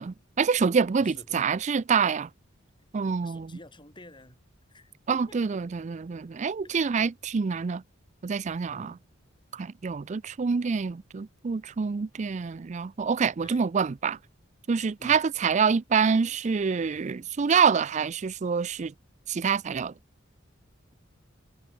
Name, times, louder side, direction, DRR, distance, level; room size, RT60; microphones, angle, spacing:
voice 1, 0.0-2.3 2.9-3.5 5.1-7.8 8.2-8.9 9.5-14.2 14.7-18.9 19.3-19.9, right 5 dB, 35° right, 0.4 m, -26 dB
voice 2, 1.0-1.6 3.2-4.4 4.7-4.9 5.3-5.4 6.6-6.9 8.7-9.0 13.4-13.7 15.0-15.2, left 1 dB, 25° left, 7.2 m, -50 dB
head